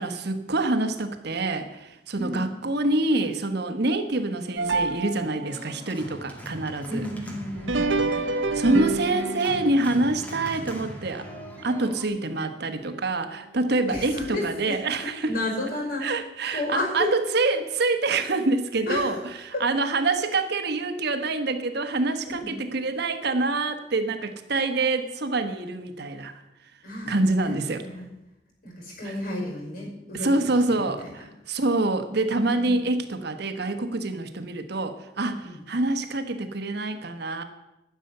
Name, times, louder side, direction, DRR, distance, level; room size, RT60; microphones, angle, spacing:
voice 1, 0.0-7.0 8.2-11.3 11.6-15.3 16.0-26.4 27.0-27.8 29.0-29.1 30.1-37.4, right 2 dB, 65° right, 8 dB, 1.2 m, -26 dB
voice 2, 2.1-2.5 6.9-8.2 8.6-9.2 13.9-14.8 15.2-16.1 16.5-17.1 18.9-19.1 19.5-19.6 22.3-22.5 26.8-28.1 28.6-30.3 30.7-31.2 32.6-32.8 35.4-35.6, left 2 dB, 55° left, 0 dB, 5.6 m, -32 dB
sound 1, 4.6-5.7 7.5-12.0 12.4-12.5 13.3-13.4 14.2-14.3, right 3 dB, 80° right, 0.9 m, -29 dB
Organ, 5.4-12.1, equal, 10° left, 2.2 m, -40 dB
12.0 x 6.8 x 9.7 m, 0.93 s
head